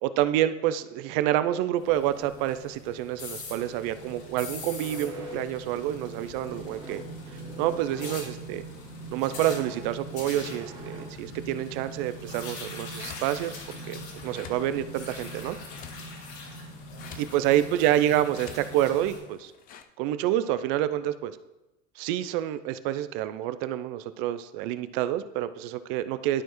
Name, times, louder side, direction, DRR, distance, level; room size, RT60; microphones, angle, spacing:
voice 1, 0.0-7.0 7.3-8.6 9.1-15.6 17.1-19.5 20.0-21.4 22.0-26.4, right 12 dB, 45° right, 13 dB, 0.4 m, -28 dB
sound 1, 1.8-19.2, left 1 dB, 55° left, 2.5 m, -41 dB
sound 2, 4.7-11.4, right 1 dB, 15° right, 1.8 m, -45 dB
sound 3, 12.9-19.8, left 9 dB, 25° left, 0.4 m, -50 dB
12.0 x 4.4 x 3.0 m, 1.0 s
hypercardioid pair, 105°, 38 cm